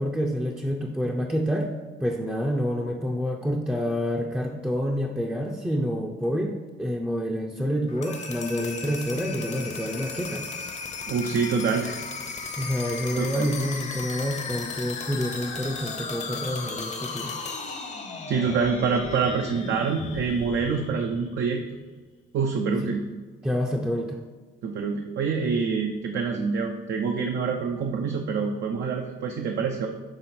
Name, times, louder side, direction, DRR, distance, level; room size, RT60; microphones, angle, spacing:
voice 1, 0.0-1.7 2.0-10.4 12.6-17.3 23.4-24.2, equal, 5° right, 0 dB, 0.5 m, -28 dB
sound 1, 7.9-21.7, left 4 dB, 35° left, 0.7 m, -36 dB
voice 2, 11.1-12.0 13.2-13.5 18.3-21.6 22.3-23.1 24.6-29.9, right 5 dB, 65° right, 3 dB, 0.6 m, -26 dB
6.8 x 3.4 x 4.3 m, 1.3 s
cardioid pair, 90°, 20 cm